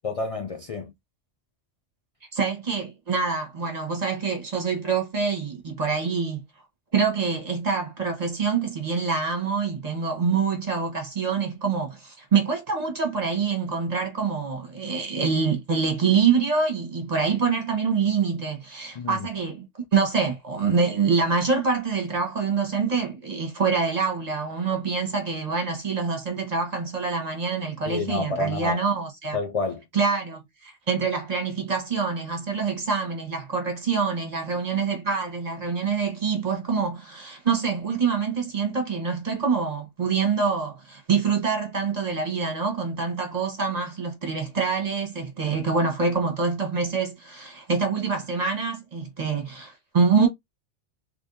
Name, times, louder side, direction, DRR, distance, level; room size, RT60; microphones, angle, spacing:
voice 1, 0.0-0.9 19.0-19.3 27.8-28.8 29.3-29.8, left 3 dB, 60° left, 0.3 m, -29 dB
voice 2, 2.3-6.4 6.9-29.4 29.9-50.3, right 5 dB, 35° right, 1.2 m, -25 dB
3.4 x 3.2 x 2.6 m
omnidirectional pair, 1.2 m